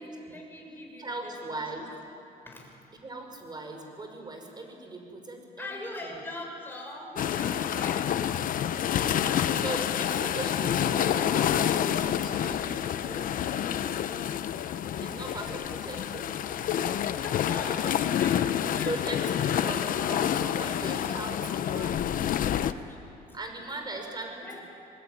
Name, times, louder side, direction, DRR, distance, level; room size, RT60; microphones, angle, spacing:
voice 1, 0.0-1.9 2.5-2.8 5.6-8.1 17.1-19.6 19.9-20.0 21.0-21.3 22.5-23.2 23.7-23.8 24.4-24.6, left 1 dB, 10° left, 0 dB, 7.1 m, -42 dB
voice 2, 1.0-1.9 2.9-5.7 6.0-6.1 9.5-13.4 13.6-14.5 15.0-16.4 18.8-22.1 23.3-24.6, right 2 dB, 25° right, 4 dB, 5.6 m, -39 dB
sound 1, 7.2-22.7, left 10 dB, 55° left, 0.9 m, -28 dB
25.5 x 20.0 x 10.0 m, 2.7 s
cardioid pair, 110°, 17 cm